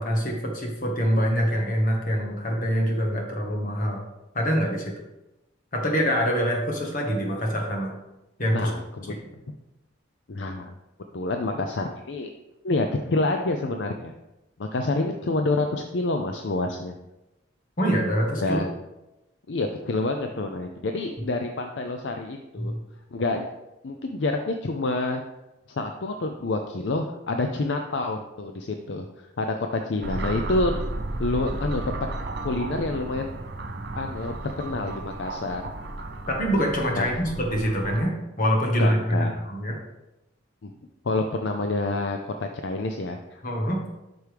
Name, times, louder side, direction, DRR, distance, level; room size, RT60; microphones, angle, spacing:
voice 1, 0.0-4.0 4.3-4.9 5.7-7.9 8.4-8.7 17.8-18.6 22.6-22.8 36.3-39.8 43.4-43.8, equal, 40° left, 0 dB, 1.5 m, -25 dB
voice 2, 8.5-9.1 10.3-10.7 11.1-12.3 12.6-14.1 14.6-16.9 18.4-18.7 19.5-22.7 23.1-23.5 23.8-25.2 25.7-29.1 29.4-30.7 31.2-31.9 32.4-33.3 34.0-35.7 37.0-37.1 38.8-39.3 40.6-40.7 41.0-43.4, left 2 dB, 65° left, 4 dB, 0.5 m, -28 dB
sound 1, 30.0-38.0, right 2 dB, 55° right, 0.6 m, -33 dB
8.1 x 6.1 x 3.4 m, 0.96 s
head